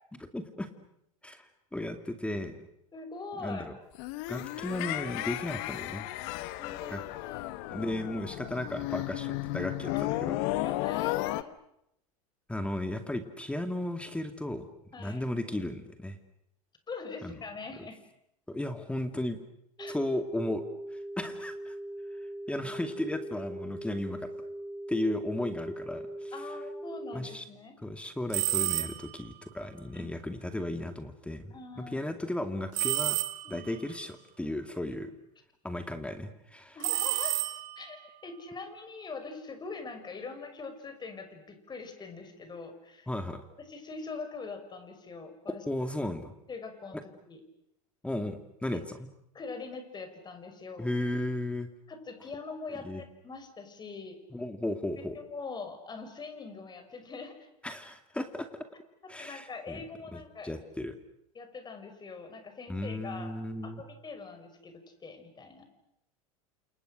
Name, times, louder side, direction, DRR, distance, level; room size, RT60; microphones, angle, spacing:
voice 1, 0.2-0.7 1.2-2.6 3.4-3.7 4.3-6.1 6.9-7.0 7.7-10.4 12.5-14.7 15.0-16.2 17.2-17.3 18.5-19.4 19.9-20.6 20.9-21.8 22.2-24.3 24.9-26.3 27.1-27.4 27.8-33.2 33.5-35.1 35.6-36.8 43.1-43.4 45.7-46.3 46.9-47.0 48.0-49.1 50.8-51.7 52.8-53.0 54.3-55.2 57.6-58.6 59.1-59.8 60.1-60.9 62.7-63.8, left 1 dB, 5° left, 8 dB, 2.3 m, -35 dB
voice 2, 2.9-3.7 6.6-7.4 9.9-10.2 10.6-11.5 14.9-15.2 16.9-18.0 19.8-20.0 26.3-27.8 29.9-30.1 31.5-32.0 33.4-33.6 36.7-37.4 37.8-43.1 43.6-45.6 46.5-47.4 49.3-50.9 51.9-54.2 55.1-57.5 59.2-60.5 61.3-65.7, left 4 dB, 25° left, 8 dB, 5.7 m, -43 dB
sound 1, 4.0-11.4, left 17 dB, 60° left, 1.4 m, -34 dB
sound 2, 19.8-27.2, right 1 dB, 10° right, 3.7 m, -40 dB
sound 3, 28.3-29.2 32.8-33.7 36.8-38.0, right 18 dB, 45° right, 2.9 m, -30 dB
30.0 x 28.0 x 6.5 m, 0.78 s
hypercardioid pair, 90°, 18 cm